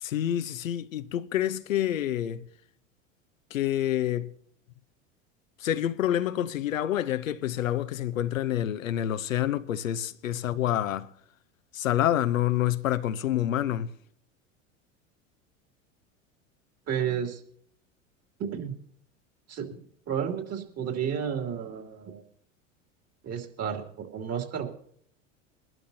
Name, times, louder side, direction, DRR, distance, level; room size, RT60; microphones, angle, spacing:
voice 1, 0.0-2.5 3.5-4.3 5.6-11.1 11.7-13.9, left 12 dB, 85° left, 0.8 m, -27 dB
voice 2, 16.9-17.4 18.4-18.8 19.5-22.2 23.2-24.7, right 8 dB, 40° right, 2.9 m, -32 dB
22.5 x 12.0 x 2.8 m
hypercardioid pair, 85°, 39 cm